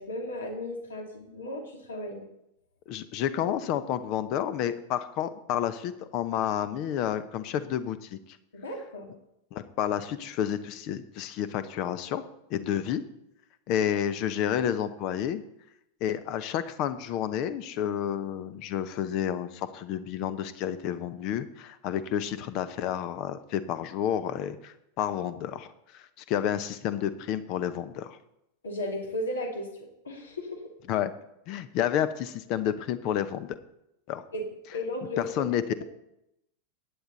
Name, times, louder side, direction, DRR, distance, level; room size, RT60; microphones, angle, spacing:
voice 1, 0.0-2.2 8.5-9.1 28.6-29.7 30.0-30.6 34.3-34.5 34.7-35.8, left 1 dB, 70° left, 2 dB, 2.5 m, -35 dB
voice 2, 2.9-8.2 9.5-12.2 12.5-13.0 13.7-15.4 16.0-25.7 25.9-28.2 30.9-31.1 31.5-33.5 34.1-34.2 35.2-35.8, left 10 dB, 40° left, 13 dB, 0.9 m, -30 dB
16.0 x 9.6 x 4.1 m, 0.83 s
figure-of-eight pair, 90°, 0 cm